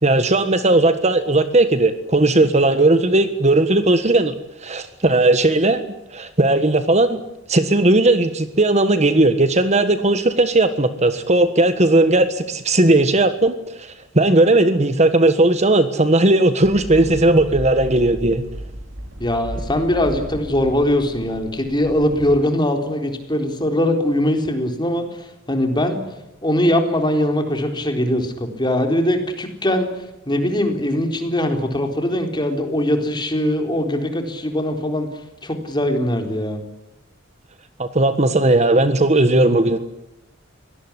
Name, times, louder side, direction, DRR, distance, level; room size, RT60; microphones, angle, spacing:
voice 1, 0.0-4.3 4.6-7.2 7.5-18.4 37.8-39.8, right 2 dB, 35° right, 10 dB, 1.5 m, -17 dB
sound 1, 16.6-22.3, equal, 75° right, 4.1 m, -34 dB
voice 2, 19.2-25.2 25.5-26.0 26.4-29.9 30.3-35.1 35.4-36.6, left 1 dB, 25° left, 5 dB, 4.1 m, -21 dB
24.0 x 18.0 x 10.0 m, 0.90 s
head